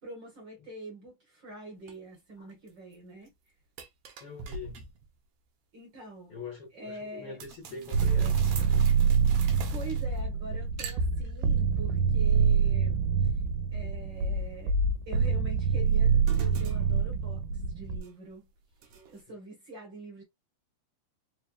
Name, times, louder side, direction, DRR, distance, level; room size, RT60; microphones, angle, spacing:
voice 1, 0.0-3.3 5.7-6.4 6.7-7.4 9.7-13.3 13.7-14.8 15.1-18.5 19.1-20.2, right 2 dB, 45° right, 1.7 m, -44 dB
sound 1, 1.9-2.0 2.5-2.9 3.3-3.4 3.8-5.1 7.4-10.4 10.8-11.6 15.2-18.3 18.8-19.2, right 5 dB, 65° right, 1.6 m, -44 dB
voice 2, 4.2-4.8 6.3-8.9 19.3-19.4, left 5 dB, 65° left, 1.4 m, -44 dB
sound 2, 7.9-18.0, right 6 dB, 90° right, 2.1 m, -26 dB
4.7 x 3.3 x 2.3 m
omnidirectional pair, 3.5 m